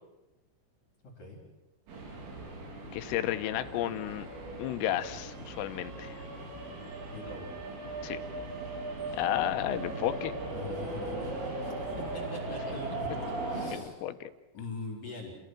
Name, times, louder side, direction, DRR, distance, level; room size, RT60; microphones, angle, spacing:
sound 1, 1.9-13.7, right 2 dB, 80° right, 6.9 m, -38 dB
voice 1, 2.9-4.3 4.6-6.2 8.0-8.2 9.1-10.3 13.7-14.3, left 13 dB, 90° left, 10 dB, 3.7 m, -32 dB
voice 2, 7.1-7.5 10.6-13.2 13.5-14.0 14.5-15.4, left 2 dB, 35° left, -1 dB, 5.1 m, -42 dB
28.5 x 17.0 x 7.7 m, 1.0 s
omnidirectional pair, 5.8 m